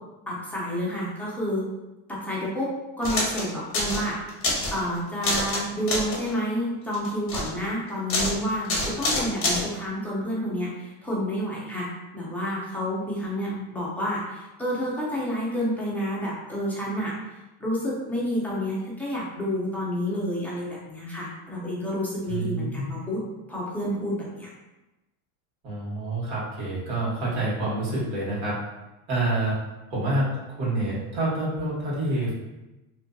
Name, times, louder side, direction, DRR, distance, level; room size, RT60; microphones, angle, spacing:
voice 1, 0.3-1.6 2.1-4.2 4.7-17.1 17.6-23.2 23.5-24.5, equal, 5° left, -7 dB, 0.3 m, -29 dB
sound 1, 3.0-3.4 3.7-4.0 4.3-4.8 5.2-5.6 5.9-6.3 6.9-7.5 8.1-8.3 8.6-9.6, left 2 dB, 30° left, 0.7 m, -26 dB
voice 2, 22.3-22.9 25.6-28.5 29.1-29.5 29.9-32.3, right 2 dB, 70° right, -6 dB, 1.4 m, -27 dB
2.6 x 2.4 x 2.2 m, 1.0 s
cardioid pair, 135°, 45 cm